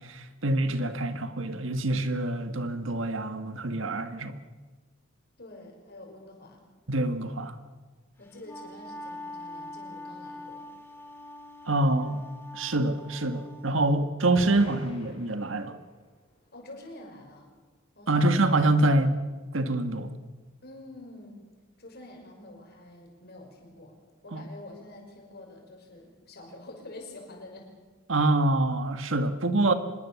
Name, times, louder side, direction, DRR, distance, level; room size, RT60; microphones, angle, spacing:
voice 1, 0.0-4.4 6.9-7.5 11.7-12.2 12.5-15.8 18.1-19.2 19.5-20.1 24.3-24.4 28.1-29.7, right 2 dB, 70° right, 1.7 m, -26 dB
voice 2, 5.4-6.6 8.2-10.7 16.5-17.5 18.0-18.4 20.6-21.4 21.8-24.0 24.2-27.7, left 2 dB, 50° left, 5.9 m, -47 dB
Wind instrument woodwind instrument, 8.2-13.7, left 1 dB, 10° left, 2.5 m, -43 dB
sound 1, 14.4-16.0, left 1 dB, 30° left, 4.5 m, -45 dB
25.5 x 20.5 x 7.1 m
head